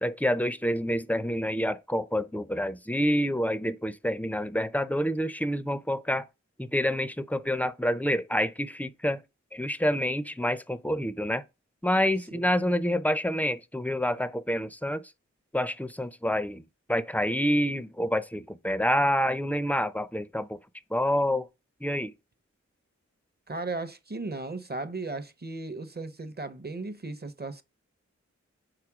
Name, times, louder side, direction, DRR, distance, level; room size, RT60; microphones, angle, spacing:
voice 1, 0.0-6.3 6.6-9.2 9.5-11.4 11.8-15.0 15.5-20.6 20.9-21.5 21.8-22.1, equal, 5° left, 0.5 m, -27 dB
voice 2, 23.5-27.6, right 3 dB, 35° right, 0.7 m, -36 dB
4.9 x 4.1 x 5.9 m
wide cardioid pair, 60°, 29 cm